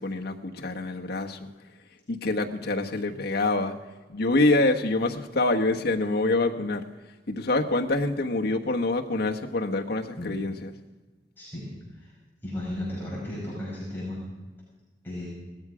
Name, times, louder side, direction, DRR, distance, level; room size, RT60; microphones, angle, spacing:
voice 1, 0.0-1.5 2.1-3.8 4.1-6.8 7.3-10.7, left 2 dB, 65° left, 3 dB, 1.2 m, -26 dB
voice 2, 11.4-12.1 12.4-14.2 15.0-15.3, left 1 dB, 10° left, -7 dB, 5.6 m, -35 dB
18.0 x 13.5 x 4.9 m, 1.2 s
head